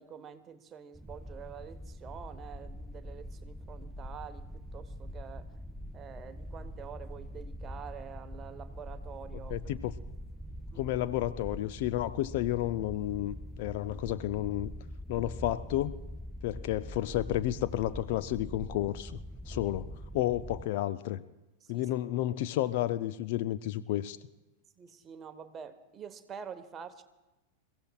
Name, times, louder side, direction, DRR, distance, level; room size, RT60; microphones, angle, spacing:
voice 1, 0.0-5.5 5.9-9.5 10.7-10.9 19.5-19.7 21.6-21.9 24.8-27.0, right 7 dB, 25° right, 9 dB, 1.1 m, -47 dB
sound 1, 0.9-20.6, equal, 5° right, 0.4 m, -43 dB
voice 2, 9.5-9.9 10.8-14.7 15.1-15.9 16.4-19.2 19.5-19.9 20.1-21.2 21.7-24.2, left 14 dB, 50° left, 13 dB, 0.5 m, -31 dB
28.5 x 16.0 x 2.3 m, 1.0 s
figure-of-eight pair, 90°, 0 cm